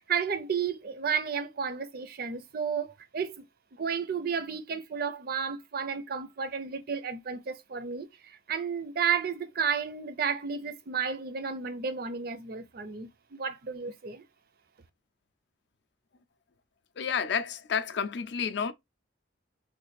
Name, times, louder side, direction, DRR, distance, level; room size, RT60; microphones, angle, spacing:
voice 1, 0.0-3.4 3.7-14.2, right 6 dB, 45° right, 0.4 m, -32 dB
voice 2, 17.0-18.7, left 6 dB, 55° left, 0.4 m, -30 dB
3.2 x 2.5 x 3.1 m
head